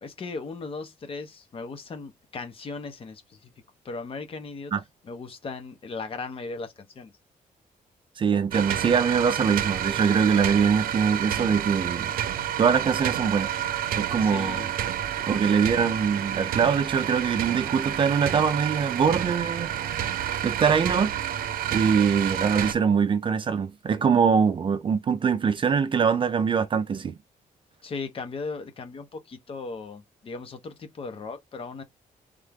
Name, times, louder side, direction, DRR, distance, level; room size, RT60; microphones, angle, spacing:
voice 1, 0.0-3.5 3.8-4.7 5.1-7.1 14.2-14.7 15.2-15.6 27.8-31.8, left 4 dB, 40° left, 1.1 m, -37 dB
voice 2, 8.2-12.1 12.6-13.5 14.0-14.6 15.3-21.4 21.7-27.2, right 6 dB, 35° right, 0.5 m, -23 dB
sound 1, 8.5-22.7, right 11 dB, 85° right, 0.6 m, -29 dB
3.6 x 3.4 x 3.6 m
wide cardioid pair, 160°, 15 cm